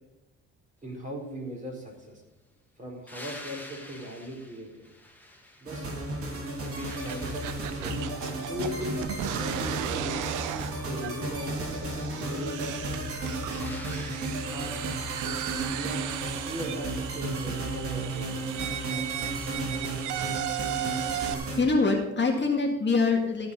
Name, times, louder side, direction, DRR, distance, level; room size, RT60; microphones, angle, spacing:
voice 1, 0.8-2.2 2.8-4.9 5.6-5.9 6.6-7.4 7.7-8.0 8.5-10.2 10.8-12.8 14.5-14.8 15.7-16.0 16.5-18.6, equal, 25° right, 0 dB, 4.2 m, -38 dB
sound 1, 3.1-6.0 6.4-8.1 13.5-15.0 17.5-17.6, left 1 dB, 5° left, 2.0 m, -47 dB
sound 2, 5.7-21.6, right 2 dB, 50° right, 3.3 m, -34 dB
sound 3, 6.8-21.3, right 12 dB, 90° right, 0.7 m, -36 dB
voice 2, 21.1-23.5, left 3 dB, 35° left, 2 dB, 1.9 m, -25 dB
14.5 x 5.1 x 6.6 m, 0.96 s
cardioid pair, 90°, 30 cm